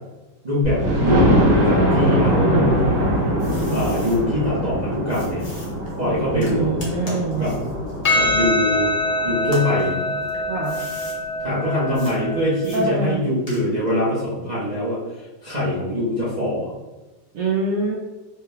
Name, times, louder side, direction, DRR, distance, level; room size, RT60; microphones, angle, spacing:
voice 1, 0.4-2.8 3.7-5.5 6.0-7.5 8.1-8.9 9.2-9.9 11.4-15.0 15.4-16.7, left 1 dB, 40° right, -9 dB, 0.6 m, -23 dB
Thunder, 0.6-10.4 10.9-11.0 11.4-11.5 11.8-11.9, equal, 55° right, 1.6 m, -22 dB
sound 1, 2.8-4.2 5.1-9.0 9.4-11.2 11.9-12.2 12.6-14.0, left 1 dB, 30° left, 0.7 m, -41 dB
voice 2, 6.3-7.5 10.5-10.8 12.7-13.2 17.3-18.0, right 3 dB, 75° right, -2 dB, 0.7 m, -24 dB
Percussion, 8.0-12.7, left 2 dB, 75° left, 0.4 m, -24 dB
4.7 x 2.2 x 3.3 m, 1.1 s
omnidirectional pair, 2.0 m